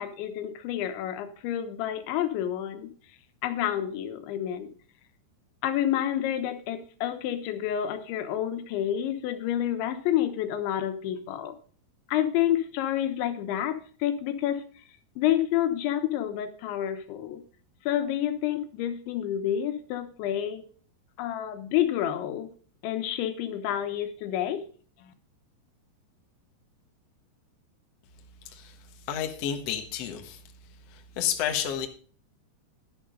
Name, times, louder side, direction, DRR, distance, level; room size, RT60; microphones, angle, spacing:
voice 1, 0.0-2.9 3.4-4.7 5.6-11.6 12.1-14.6 15.2-17.4 17.9-20.7 21.2-22.5 22.8-24.6 25.0-25.1, left 11 dB, 85° left, 8 dB, 3.5 m, -29 dB
voice 2, 28.4-28.8 29.1-30.4 30.9-31.9, left 9 dB, 65° left, 5 dB, 1.5 m, -31 dB
11.5 x 11.5 x 3.8 m, 0.43 s
omnidirectional pair, 5.1 m